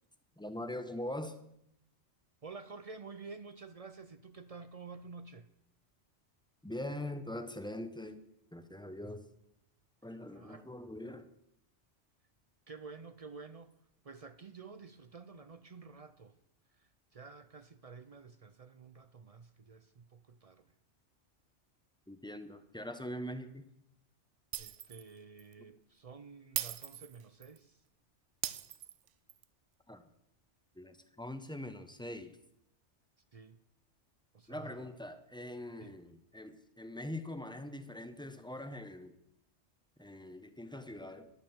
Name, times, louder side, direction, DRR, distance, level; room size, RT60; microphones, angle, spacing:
voice 1, 0.4-1.4 6.6-8.2 8.5-9.2 10.0-11.3 22.1-23.6 29.9-30.0 30.8-32.4 34.5-39.1 40.0-41.3, left 1 dB, 5° left, 0.6 m, -42 dB
voice 2, 2.4-5.5 10.3-10.7 12.7-13.7 14.0-16.4 16.7-20.7 24.6-27.8 33.3-33.6 34.3-35.0 35.8-36.0, right 4 dB, 50° right, 0.4 m, -51 dB
Shatter, 24.5-25.1 25.4-25.5 26.6-27.6 28.4-29.4, right 11 dB, 90° right, 1.0 m, -39 dB
11.0 x 8.1 x 7.2 m
omnidirectional pair, 1.2 m